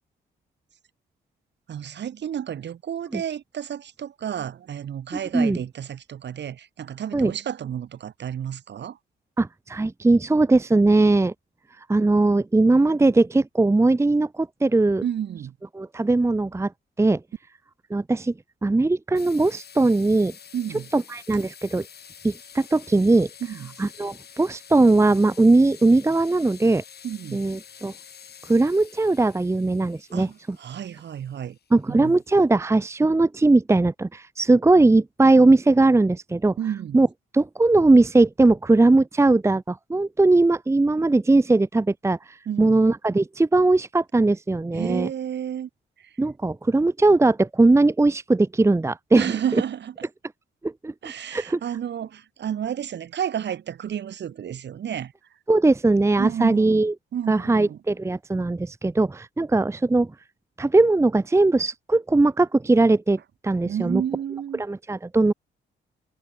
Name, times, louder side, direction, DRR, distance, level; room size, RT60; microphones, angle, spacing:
voice 1, 1.7-9.0 15.0-15.6 20.5-20.9 23.4-23.8 27.0-27.5 30.1-31.6 31.9-32.2 36.6-37.0 42.5-42.8 44.7-45.7 46.0-46.1 49.1-50.1 51.0-55.1 56.2-56.8 57.1-57.8 63.6-64.6, right 9 dB, 60° right, 6.0 m, -31 dB
voice 2, 9.4-11.3 11.9-15.0 15.7-16.7 17.0-17.2 17.9-18.3 18.6-20.3 20.9-21.9 22.2-23.3 23.8-26.8 27.3-27.9 28.5-30.3 31.7-36.5 36.9-37.1 37.3-45.1 46.2-49.2 50.6-50.9 51.3-51.6 55.5-56.9 57.3-60.1 60.6-64.0 64.6-65.3, right 2 dB, 15° right, 0.9 m, -19 dB
sound 1, 19.2-32.6, left 8 dB, 55° left, 7.0 m, -48 dB
cardioid pair, 90°, 20 cm